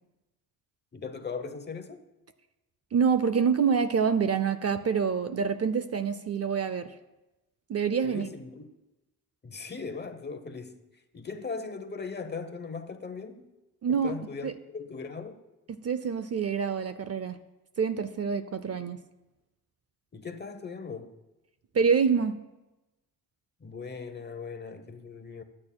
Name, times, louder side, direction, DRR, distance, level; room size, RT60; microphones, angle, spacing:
voice 1, 0.9-2.0 8.0-8.7 9.4-10.8 11.1-13.5 13.9-15.4 20.1-21.1 23.6-25.4, left 5 dB, 25° left, 0.9 m, -39 dB
voice 2, 2.9-6.9 7.7-8.3 13.8-14.1 14.4-14.5 15.7-17.4 17.8-19.0 21.7-22.4, right 6 dB, 40° right, 0.5 m, -26 dB
22.0 x 8.7 x 2.3 m
cardioid pair, 110°, 40 cm